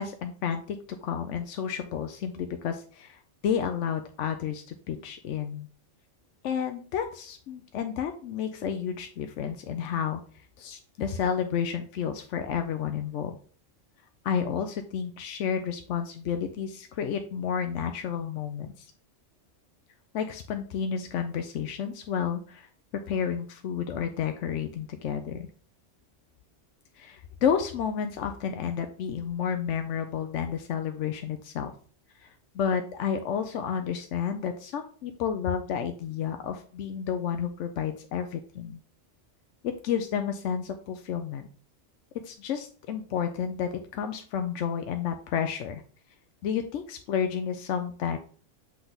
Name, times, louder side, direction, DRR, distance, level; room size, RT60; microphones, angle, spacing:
voice 1, 0.0-5.7 6.4-10.2 10.6-13.4 14.2-18.9 20.1-22.7 23.1-25.5 27.0-31.7 32.2-38.8 39.6-41.5 42.2-45.8 46.4-48.2, left 7 dB, 75° left, 7 dB, 0.9 m, -31 dB
7.9 x 3.5 x 3.9 m, 0.44 s
omnidirectional pair, 1.3 m